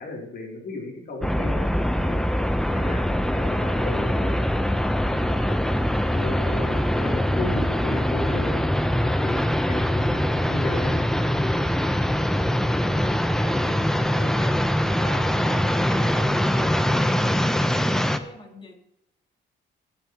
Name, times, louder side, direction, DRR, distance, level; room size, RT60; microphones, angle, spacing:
voice 1, 0.0-1.6 1.9-2.2 2.7-3.0 3.3-4.9 5.3-5.6 6.1-8.6 9.0-10.2 10.5-11.1 14.2-14.4, left 3 dB, 55° left, -1 dB, 3.3 m, -35 dB
sound 1, 1.2-18.2, equal, ahead, 0.8 m, -23 dB
voice 2, 12.8-18.7, left 2 dB, 25° left, 1 dB, 2.6 m, -41 dB
17.0 x 7.3 x 3.0 m, 0.83 s
cardioid pair, 90°, 20 cm